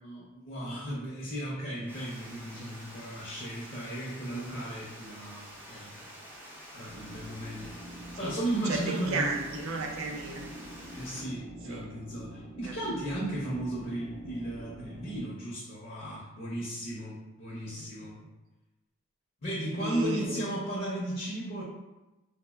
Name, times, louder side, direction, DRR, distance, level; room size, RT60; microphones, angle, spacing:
voice 1, 0.0-6.2 6.7-9.3 11.0-18.2 19.4-21.6, right 1 dB, 45° left, -7 dB, 0.5 m, -35 dB
Water, 1.9-11.2, equal, 10° right, 0.4 m, -48 dB
sound 1, 6.8-15.2, right 1 dB, 35° right, 0.7 m, -46 dB
voice 2, 8.7-10.5 11.7-12.0 12.6-12.8 19.8-20.4, right 2 dB, 80° right, 1 dB, 0.4 m, -33 dB
3.1 x 2.0 x 2.2 m, 1.0 s
head